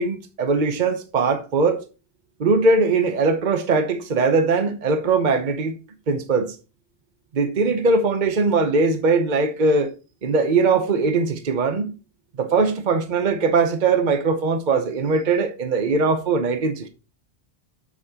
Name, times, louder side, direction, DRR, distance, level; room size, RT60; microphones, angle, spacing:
voice 1, 0.0-1.8 2.4-5.7 6.1-6.6 7.3-9.9 10.2-11.9 12.4-16.9, right 4 dB, 50° right, 1.0 m, -20 dB
8.4 x 7.3 x 2.9 m
omnidirectional pair, 1.0 m